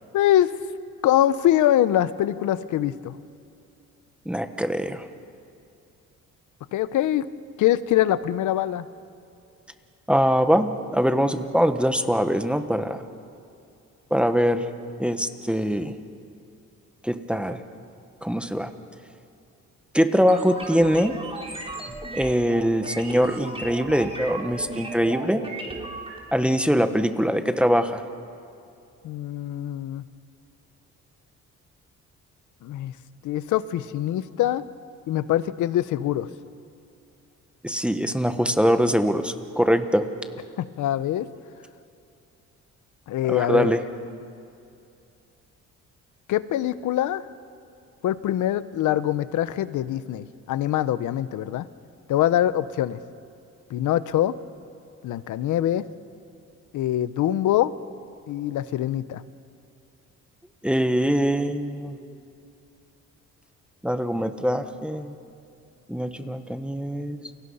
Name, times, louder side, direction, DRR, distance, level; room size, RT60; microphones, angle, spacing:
voice 1, 0.1-0.5 1.0-3.2 6.7-7.3 7.6-8.9 29.0-30.0 32.6-32.9 33.2-34.6 35.1-36.3 40.6-41.3 43.1-43.7 46.3-47.2 48.0-51.7 52.1-53.0 53.7-54.4 55.0-55.8 56.7-57.7 58.3-59.2, left 12 dB, 80° left, 15 dB, 0.9 m, -23 dB
voice 2, 4.2-5.1 10.1-13.0 14.1-14.7 15.0-15.9 17.0-17.6 18.2-18.7 19.9-21.2 22.1-25.4 26.3-28.0 37.6-40.0 43.3-43.8 60.6-62.0 63.8-65.1 65.9-67.2, equal, 5° right, 7 dB, 1.5 m, -23 dB
sound 1, 20.3-26.2, right 2 dB, 20° right, 3.9 m, -35 dB
29.5 x 24.5 x 5.7 m, 2.6 s
cardioid pair, 90°, 30 cm